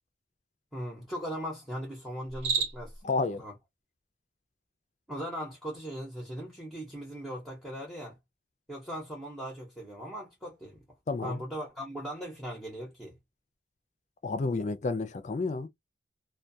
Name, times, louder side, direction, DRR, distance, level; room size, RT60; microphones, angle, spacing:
voice 1, 0.7-3.0 3.4-3.6 5.1-8.2 8.7-10.8 11.2-13.2, equal, ahead, 0.8 m, -39 dB
Cricket, 2.2-3.0, right 6 dB, 70° right, 1.2 m, -31 dB
voice 2, 3.0-3.4 11.1-11.4 14.2-15.7, left 3 dB, 40° left, 0.4 m, -30 dB
2.2 x 2.2 x 2.6 m
head